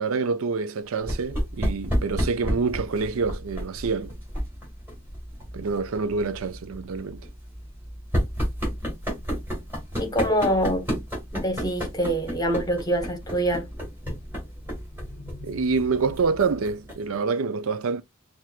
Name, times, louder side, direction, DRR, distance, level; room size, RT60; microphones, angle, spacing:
voice 1, 0.0-4.1 5.5-7.2 15.4-18.0, right 4 dB, 80° right, 0.5 m, -26 dB
sound 1, 1.0-17.2, equal, 10° right, 2.1 m, -32 dB
voice 2, 10.0-10.9 11.3-13.7, equal, 20° left, 1.0 m, -25 dB
5.8 x 2.5 x 2.3 m
head